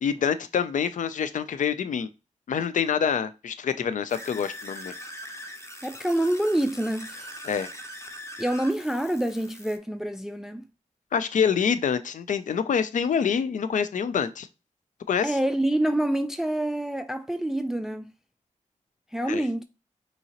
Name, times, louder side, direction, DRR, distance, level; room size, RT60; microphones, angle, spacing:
voice 1, 0.0-2.1 2.5-4.9 7.4-7.7 11.1-14.5 15.1-15.4 19.3-19.4, left 7 dB, 75° left, 0.4 m, -26 dB
sound 1, 4.1-9.8, equal, 20° left, 0.8 m, -42 dB
voice 2, 5.8-7.3 8.4-10.7 15.2-18.1 19.1-19.6, right 1 dB, 5° right, 0.3 m, -27 dB
5.4 x 2.9 x 2.9 m
cardioid pair, 65°, 13 cm